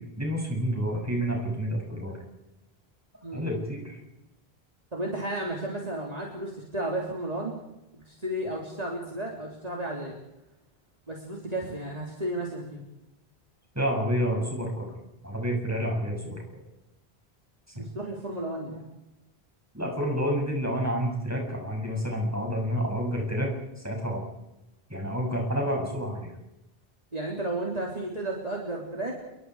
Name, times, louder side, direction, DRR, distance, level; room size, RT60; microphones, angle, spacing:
voice 1, 0.2-2.2 3.3-4.0 13.7-14.9 15.2-16.6 17.8-17.9 19.7-24.2 24.9-26.3, equal, 15° right, 0 dB, 7.5 m, -29 dB
voice 2, 4.9-7.6 7.9-10.2 11.1-12.8 17.7-18.9 27.1-29.2, right 1 dB, 40° right, -2 dB, 3.7 m, -33 dB
29.5 x 22.5 x 4.9 m, 0.94 s
omnidirectional pair, 1.1 m